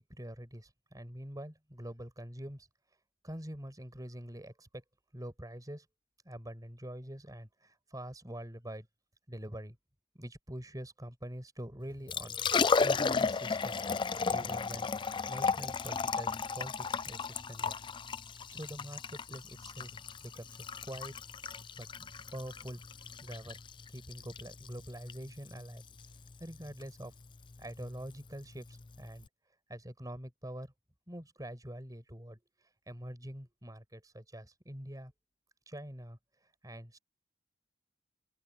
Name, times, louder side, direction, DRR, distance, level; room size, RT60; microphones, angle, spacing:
voice 1, 0.0-2.7 3.2-4.8 5.1-5.9 6.3-8.9 9.3-9.8 10.2-12.4 12.8-13.9 14.3-14.9 15.3-17.8 18.5-19.9 20.2-20.5 20.8-21.2 21.8-22.8 23.2-23.6 23.9-25.8 26.4-27.1 27.6-29.3 29.7-30.7 31.1-32.4 32.9-35.1 35.7-36.2 36.6-37.0, equal, 20° right, 6.9 m, -45 dB
Liquid, 11.9-29.3, left 5 dB, 25° left, 0.4 m, -35 dB
open air
head